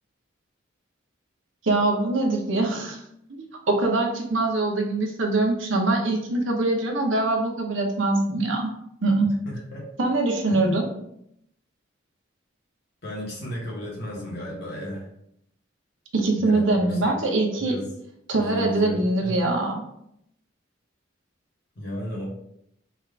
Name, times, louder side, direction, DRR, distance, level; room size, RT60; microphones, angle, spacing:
voice 1, 1.6-3.0 3.3-8.7 9.0-9.3 10.0-10.8 16.1-17.7 18.3-19.8, right 2 dB, 80° right, 2 dB, 0.8 m, -23 dB
voice 2, 9.4-9.9 10.5-10.8 13.0-15.1 16.4-17.2 17.6-17.9 18.4-19.4 21.8-22.3, left 1 dB, 55° left, -4 dB, 1.1 m, -34 dB
3.5 x 2.5 x 4.5 m, 0.75 s
head